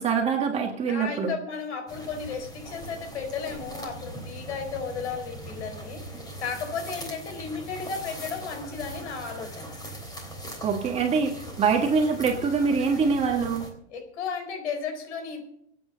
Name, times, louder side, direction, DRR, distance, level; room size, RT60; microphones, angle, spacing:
voice 1, 0.0-1.3 10.6-13.7, right 5 dB, 20° right, 2 dB, 1.6 m, -24 dB
voice 2, 0.9-9.7 13.9-15.4, left 5 dB, 80° left, 5 dB, 4.5 m, -34 dB
sound 1, 1.9-13.7, right 1 dB, 10° left, 3.5 m, -40 dB
24.5 x 9.0 x 4.0 m, 0.72 s
supercardioid pair, 145°, 34 cm